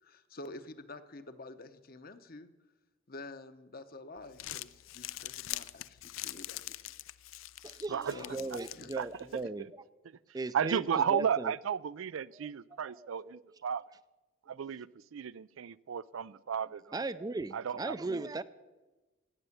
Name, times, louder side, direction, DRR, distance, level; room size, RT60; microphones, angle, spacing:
voice 1, 0.0-2.5 3.1-6.8 7.7-7.8 8.1-8.9, left 2 dB, 45° left, 10 dB, 0.9 m, -48 dB
Crumpling crinkling, 4.2-9.4, left 15 dB, 85° left, 0.5 m, -44 dB
voice 2, 7.6-9.7 10.3-10.8 11.1-11.5 13.0-13.4 16.9-18.4, right 3 dB, 20° right, 14 dB, 0.4 m, -37 dB
voice 3, 10.5-13.8 14.5-17.0 17.5-18.3, right 7 dB, 85° right, 19 dB, 0.4 m, -34 dB
17.0 x 6.8 x 9.7 m, 1.2 s
head